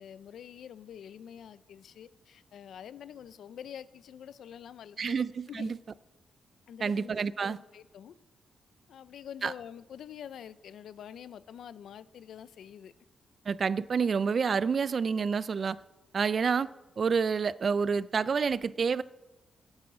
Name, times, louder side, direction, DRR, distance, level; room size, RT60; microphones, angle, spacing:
voice 1, 0.0-5.2 5.5-5.7 6.7-8.2 8.9-12.9, left 9 dB, 70° left, 0.6 m, -46 dB
voice 2, 5.0-5.8 6.8-7.6 9.4-9.5 13.5-15.8 16.1-16.7 17.0-19.0, right 5 dB, 40° right, 0.4 m, -28 dB
13.5 x 10.5 x 6.1 m
wide cardioid pair, 145°, 0 cm